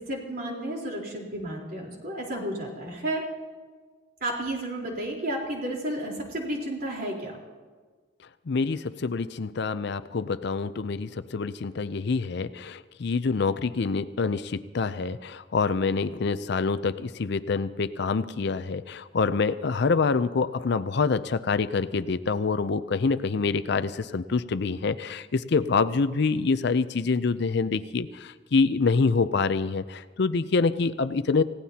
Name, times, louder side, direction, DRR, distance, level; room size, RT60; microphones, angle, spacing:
voice 1, 0.0-3.3 4.2-7.4, right 1 dB, 50° right, -1 dB, 3.9 m, -32 dB
voice 2, 8.5-31.4, left 4 dB, 60° left, 13 dB, 0.5 m, -26 dB
28.5 x 17.0 x 2.9 m, 1.4 s
head